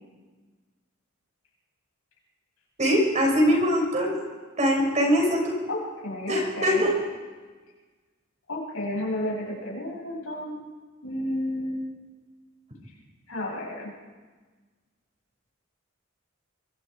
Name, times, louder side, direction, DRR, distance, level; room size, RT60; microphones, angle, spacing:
voice 1, 2.8-4.2 4.6-5.5 6.3-6.9, equal, 35° right, 0 dB, 6.0 m, -22 dB
voice 2, 5.7-6.9 8.5-10.6 11.0-11.9 13.3-13.9, left 1 dB, 75° left, -2 dB, 7.6 m, -32 dB
25.5 x 22.5 x 4.8 m, 1.4 s
head